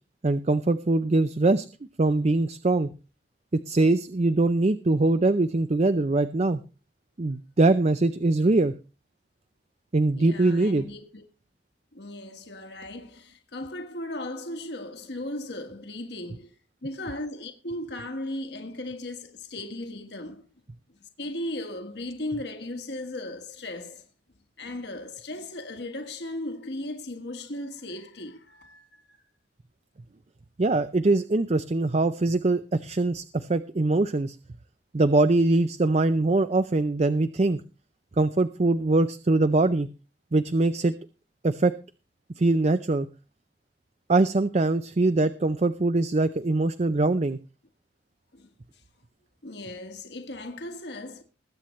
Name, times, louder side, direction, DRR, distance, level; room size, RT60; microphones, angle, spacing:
voice 1, 0.2-1.6 2.0-2.9 3.5-6.6 7.2-8.7 9.9-10.8 30.6-34.4 34.9-37.6 38.2-39.9 40.3-40.9 41.4-41.7 42.4-43.1 44.1-47.4, right 2 dB, 35° right, 0.5 m, -22 dB
voice 2, 10.1-11.2 11.9-16.5 16.8-20.4 20.9-24.1 24.6-29.2 48.3-48.5 49.4-51.2, left 1 dB, 65° left, 1.5 m, -37 dB
21.0 x 8.5 x 3.2 m
head